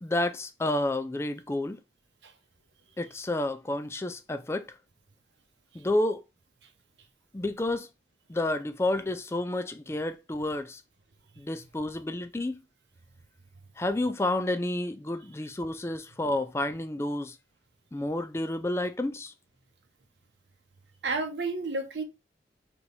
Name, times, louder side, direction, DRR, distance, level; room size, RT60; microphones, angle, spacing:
voice 1, 0.0-1.8 3.0-4.7 5.7-6.2 7.3-7.9 8.3-10.8 11.4-12.6 13.8-17.4 17.9-19.3, left 1 dB, 15° left, 0.3 m, -30 dB
voice 2, 21.0-22.0, right 3 dB, 90° right, 0.9 m, -31 dB
3.4 x 3.0 x 4.0 m
head